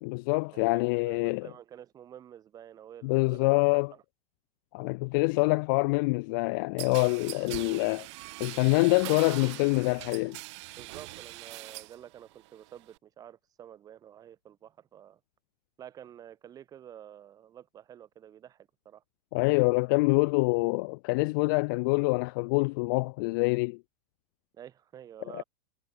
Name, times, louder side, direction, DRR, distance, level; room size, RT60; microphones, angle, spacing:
voice 1, 0.0-1.5 3.0-3.9 4.7-8.1 8.4-10.4 19.3-23.8 25.3-25.4, left 28 dB, 30° left, 0.5 m, -26 dB
voice 2, 0.5-4.0 5.4-5.5 10.8-15.2 15.8-19.0 24.5-25.4, right 10 dB, 15° right, 5.7 m, -49 dB
sound 1, 6.8-12.0 12.3-13.0, right 21 dB, 45° right, 7.9 m, -42 dB
supercardioid pair, 175°, 21 cm